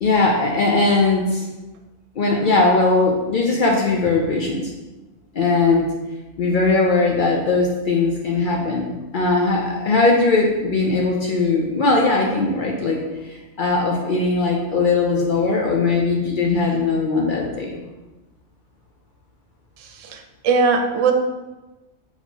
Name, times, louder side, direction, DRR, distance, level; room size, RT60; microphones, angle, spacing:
voice 1, 0.0-1.4 2.2-4.7 5.3-5.9 6.4-8.9 9.1-13.0 13.3-17.8, left 3 dB, 60° left, -1 dB, 0.5 m, -19 dB
voice 2, 19.8-21.1, right 5 dB, 85° right, 4 dB, 1.0 m, -20 dB
4.3 x 4.1 x 2.8 m, 1.1 s
omnidirectional pair, 1.3 m